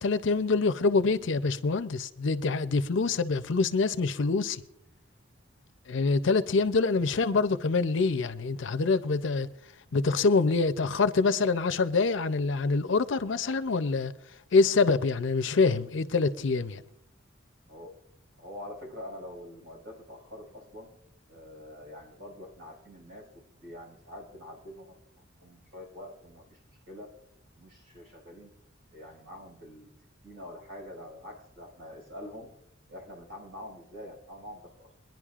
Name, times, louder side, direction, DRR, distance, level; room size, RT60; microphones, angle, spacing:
voice 1, 0.0-4.6 5.9-9.5 9.9-14.1 14.5-16.8, left 4 dB, 65° left, 0.6 m, -25 dB
voice 2, 18.4-20.9 21.3-23.3 23.6-25.0 25.4-26.6 26.9-27.1 27.5-28.5 28.9-29.9 30.2-32.5 32.9-34.9, left 1 dB, 70° right, 5.4 m, -45 dB
22.5 x 10.5 x 2.4 m
head